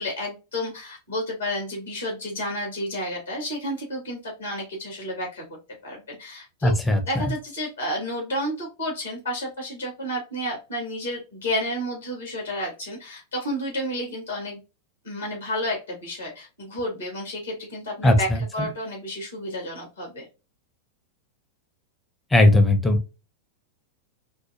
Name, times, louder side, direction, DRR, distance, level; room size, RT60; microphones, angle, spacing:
voice 1, 0.0-5.5 5.8-6.7 7.1-14.6 15.0-20.2, equal, 75° left, 0 dB, 1.9 m, -31 dB
voice 2, 6.6-7.0 18.0-18.7 22.3-23.1, left 1 dB, 10° left, 5 dB, 0.8 m, -18 dB
4.6 x 2.2 x 2.5 m, 0.29 s
figure-of-eight pair, 90°, 0 cm